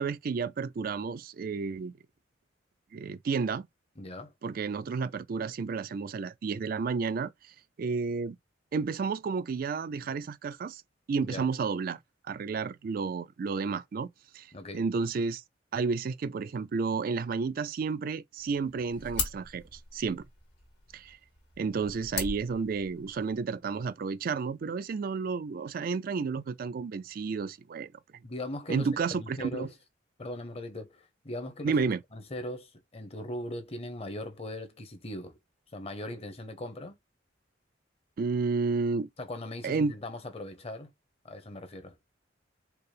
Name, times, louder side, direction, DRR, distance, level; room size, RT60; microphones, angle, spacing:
voice 1, 0.0-1.9 2.9-3.7 4.4-8.4 8.7-10.8 11.1-12.0 12.3-14.1 14.3-15.4 15.7-20.2 20.9-21.2 21.6-27.9 28.7-29.7 31.6-32.0 38.2-39.1 39.6-39.9, right 5 dB, 50° right, 0.3 m, -31 dB
voice 2, 4.0-4.3 11.2-11.5 14.5-14.8 28.2-29.7 30.2-31.7 32.1-35.4 35.7-37.0 39.2-40.9 41.2-42.0, left 1 dB, 35° left, 0.8 m, -39 dB
sound 1, 18.4-23.4, left 5 dB, 65° left, 1.6 m, -40 dB
4.5 x 2.0 x 3.2 m
head